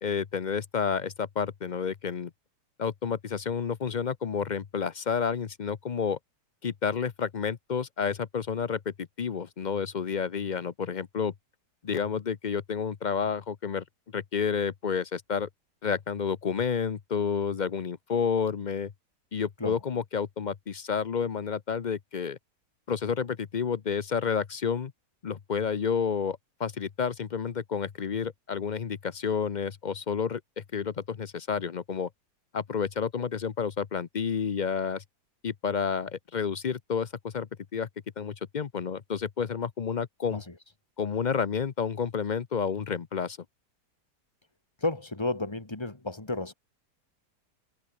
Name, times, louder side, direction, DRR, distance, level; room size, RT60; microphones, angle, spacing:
voice 1, 0.0-2.3 2.8-6.2 6.6-11.3 11.8-13.8 14.1-15.5 15.8-18.9 19.3-22.4 22.9-24.9 25.2-32.1 32.5-35.0 35.4-37.9 38.2-40.4 41.0-43.4, left 6 dB, 55° left, 0.5 m, -30 dB
voice 2, 44.8-46.5, left 2 dB, 15° left, 2.4 m, -32 dB
omnidirectional pair, 1.8 m